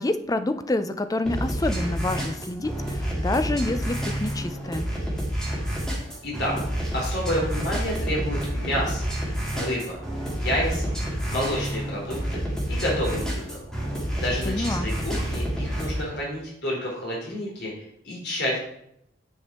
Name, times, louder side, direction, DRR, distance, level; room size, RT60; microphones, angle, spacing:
voice 1, 0.0-4.9 14.5-14.9, left 2 dB, 20° left, 10 dB, 0.4 m, -27 dB
sound 1, 1.2-16.0, equal, 5° left, 2.0 m, -29 dB
voice 2, 6.2-6.5 6.9-9.1 9.5-10.0 10.3-10.9 11.3-13.6 14.2-18.6, equal, 60° left, -3 dB, 3.6 m, -29 dB
9.8 x 4.8 x 4.3 m, 0.74 s
head